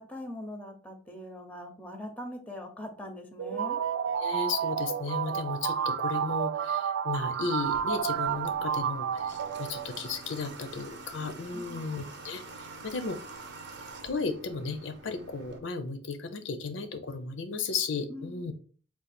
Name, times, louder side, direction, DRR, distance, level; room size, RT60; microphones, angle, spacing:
voice 1, 0.0-3.8 11.5-12.0 18.1-18.4, left 1 dB, 10° left, 5 dB, 0.7 m, -42 dB
sound 1, 3.4-10.2, right 8 dB, 85° right, 0.3 m, -31 dB
voice 2, 4.2-12.4 12.8-13.2 14.0-18.5, left 4 dB, 75° left, 9 dB, 0.5 m, -34 dB
Water / Water tap faucet, 7.6-15.6, right 3 dB, 65° right, 0.8 m, -46 dB
3.8 x 2.4 x 4.2 m, 0.40 s
head